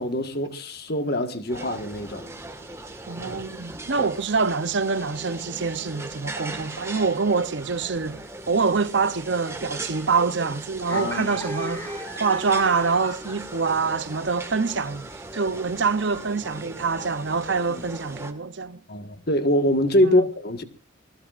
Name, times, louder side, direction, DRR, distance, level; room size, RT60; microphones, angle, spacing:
voice 1, 0.0-2.3 4.0-4.1 10.9-11.3 17.7-17.8 18.9-20.6, left 1 dB, 50° left, 1.6 m, -24 dB
sound 1, 1.5-18.3, right 2 dB, 15° right, 1.7 m, -38 dB
voice 2, 3.1-18.8 20.0-20.3, right 4 dB, 60° right, 0.7 m, -25 dB
sound 2, 7.6-8.3 8.5-8.7 9.0-9.5 9.8-10.0 10.8-15.2 15.5-15.7 16.0-16.2, equal, 10° left, 5.4 m, -42 dB
28.0 x 20.5 x 2.5 m
head